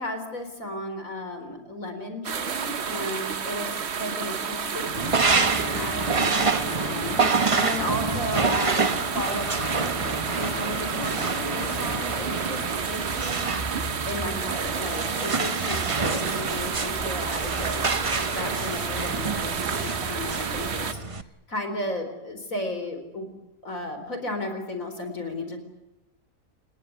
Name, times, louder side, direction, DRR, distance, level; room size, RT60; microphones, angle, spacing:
voice 1, 0.0-3.7 4.0-7.1 7.5-10.0 10.3-13.5 14.0-21.0 21.5-23.3 23.6-25.6, left 1 dB, 55° left, 6 dB, 4.5 m, -34 dB
sound 1, 2.2-20.9, right 6 dB, 45° right, 1.2 m, -31 dB
Acoustic guitar, 4.9-12.0, left 6 dB, 90° left, 2.1 m, -39 dB
sound 2, 4.9-21.2, right 4 dB, 25° right, 0.8 m, -28 dB
29.5 x 19.5 x 8.1 m, 0.94 s
omnidirectional pair, 1.7 m